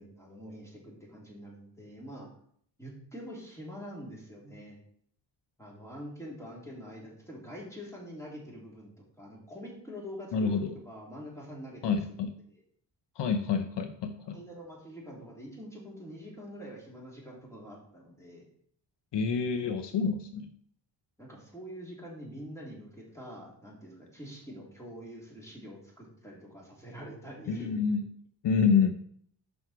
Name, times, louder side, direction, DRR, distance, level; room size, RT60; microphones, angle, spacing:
voice 1, 0.0-2.3 2.8-4.8 5.6-8.9 9.2-10.5 10.9-12.0 14.3-18.5 21.2-27.7, equal, 5° left, -4 dB, 3.4 m, -45 dB
voice 2, 10.3-10.7 11.8-12.3 13.2-14.4 19.1-20.5 27.5-28.1 28.4-28.9, left 6 dB, 70° left, 8 dB, 0.7 m, -28 dB
6.3 x 5.8 x 4.5 m, 0.62 s
cardioid pair, 80°, 44 cm